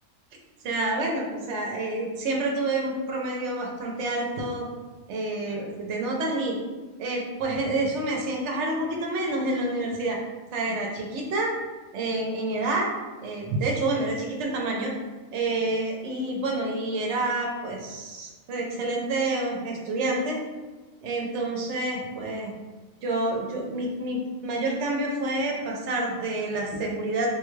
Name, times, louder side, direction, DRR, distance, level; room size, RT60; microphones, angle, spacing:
voice 1, 0.6-4.7 5.1-6.6 7.0-10.2 10.5-11.5 11.9-12.9 13.2-14.9 15.3-20.4 21.0-22.5 23.0-27.4, right 2 dB, 65° right, 0 dB, 0.9 m, -28 dB
3.3 x 2.2 x 3.1 m, 1.2 s
omnidirectional pair, 1.4 m